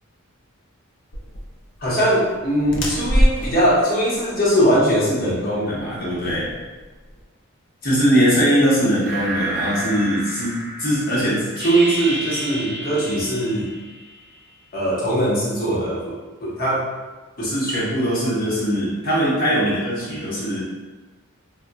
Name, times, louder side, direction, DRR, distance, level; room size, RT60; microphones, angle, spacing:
sound 1, 1.1-7.2, equal, 55° left, 0.5 m, -25 dB
voice 1, 1.8-6.5 7.8-13.7 14.7-16.1 16.4-16.8 17.4-20.6, equal, 40° left, -7 dB, 0.9 m, -20 dB
sound 2, 9.0-14.5, right 1 dB, 55° right, 0.6 m, -31 dB
3.8 x 2.2 x 2.2 m, 1.3 s
head